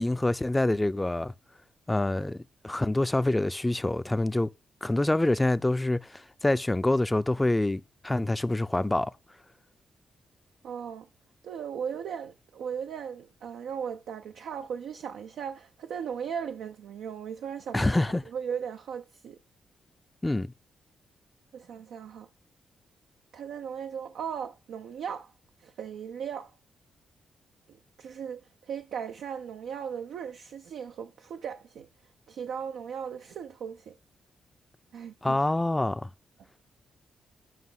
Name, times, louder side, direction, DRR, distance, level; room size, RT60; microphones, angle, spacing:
voice 1, 0.0-1.3 1.9-4.5 4.8-9.1 17.7-18.2 20.2-20.5 35.2-36.1, left 2 dB, 20° left, 0.5 m, -26 dB
voice 2, 10.6-11.1 11.4-17.9 18.3-19.4 21.5-22.3 23.3-25.3 25.6-26.5 27.7-31.9 32.3-34.0 34.9-35.4, right 7 dB, 75° right, 0.4 m, -37 dB
9.4 x 5.5 x 3.7 m
hypercardioid pair, 40°, 0 cm